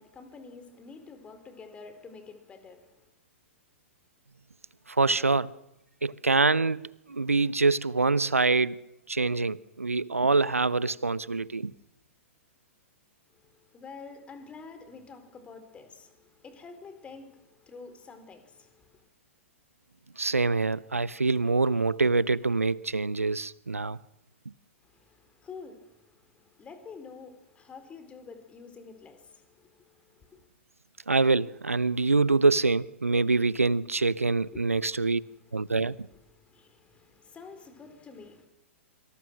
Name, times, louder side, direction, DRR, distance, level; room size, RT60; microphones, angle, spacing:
voice 1, 0.0-3.1 13.3-19.1 24.8-30.5 34.5-38.5, left 4 dB, 15° left, 4.1 m, -49 dB
voice 2, 4.9-5.5 6.0-8.8 9.1-11.7 20.2-24.0 31.1-35.2 35.5-35.9, right 3 dB, 80° right, 0.8 m, -25 dB
26.0 x 25.0 x 6.2 m
figure-of-eight pair, 110°, 7 cm